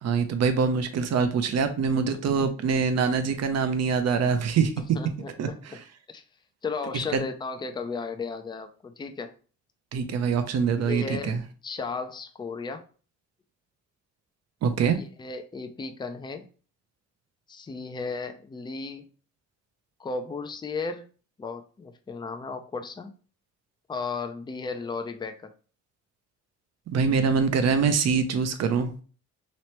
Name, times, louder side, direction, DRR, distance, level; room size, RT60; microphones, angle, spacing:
voice 1, 0.0-5.0 5.4-5.5 7.1-7.2 9.9-11.4 14.6-15.0 26.9-28.9, right 5 dB, 60° right, 8 dB, 0.6 m, -24 dB
voice 2, 4.8-5.6 6.1-6.2 6.6-9.3 10.8-12.8 14.8-16.5 17.5-19.1 20.0-21.1 21.4-23.1 23.9-25.5, left 4 dB, 15° left, 7 dB, 0.4 m, -35 dB
3.1 x 3.0 x 3.0 m, 0.38 s
cardioid pair, 90°, 30 cm